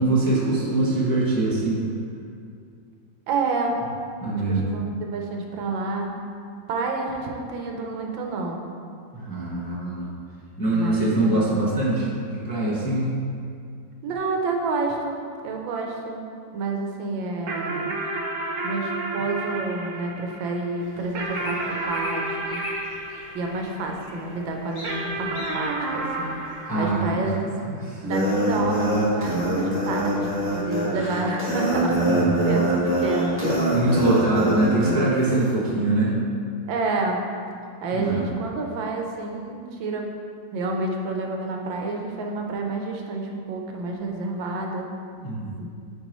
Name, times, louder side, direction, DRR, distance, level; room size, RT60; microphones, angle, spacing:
voice 1, 0.0-1.9 4.2-4.7 9.1-10.1 10.6-13.1 26.7-27.0 27.6-28.1 32.1-32.2 33.7-36.2 37.9-38.3 45.2-45.7, right 2 dB, 15° left, -7 dB, 0.7 m, -23 dB
voice 2, 3.3-3.8 4.3-6.1 6.7-8.6 10.7-11.4 14.0-15.2 15.4-16.3 16.5-17.9 18.6-22.6 23.3-26.4 26.7-27.4 28.0-32.0 32.4-33.8 36.7-37.2 37.8-40.0 40.5-44.9 45.6-45.7, right 3 dB, 85° right, 1 dB, 1.5 m, -29 dB
sound 1, 17.5-24.2 24.8-27.7, right 2 dB, 60° right, 0.8 m, -31 dB
sound 2, 20.8-27.1, left 1 dB, 75° left, 0.4 m, -41 dB
sound 3, 28.0-35.0, right 1 dB, 5° right, 1.4 m, -24 dB
9.1 x 4.7 x 3.1 m, 2.4 s
omnidirectional pair, 2.0 m